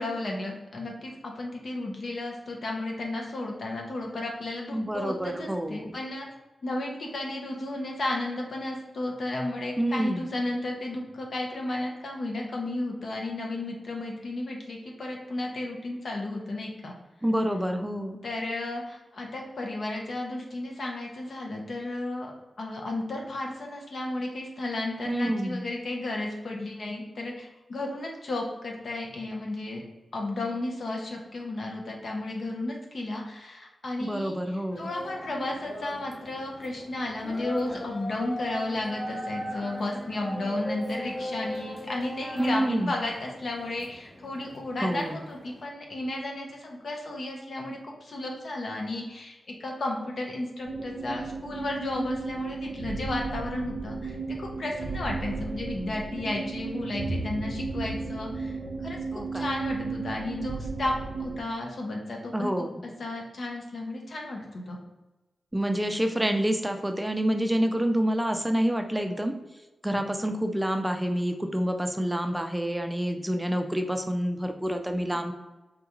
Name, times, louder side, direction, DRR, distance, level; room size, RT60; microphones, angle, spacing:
voice 1, 0.0-6.3 6.6-16.9 18.2-22.3 22.6-29.8 30.1-34.4 34.8-58.6 58.8-59.0 59.3-60.9 61.2-62.5 63.0-64.8, left 2 dB, 65° left, 0 dB, 0.7 m, -33 dB
voice 2, 4.7-6.0 9.8-10.3 17.2-18.2 25.0-25.6 34.0-34.9 42.4-42.9 44.8-45.2 59.1-59.5 62.3-62.8 65.5-69.3 69.8-75.3, equal, 10° right, 5 dB, 0.4 m, -28 dB
sound 1, 34.7-45.6, equal, 25° left, 0.8 m, -39 dB
sound 2, 50.6-61.4, right 3 dB, 90° right, 0.4 m, -34 dB
3.7 x 2.3 x 2.9 m, 1.1 s
cardioid pair, 45°, 0 cm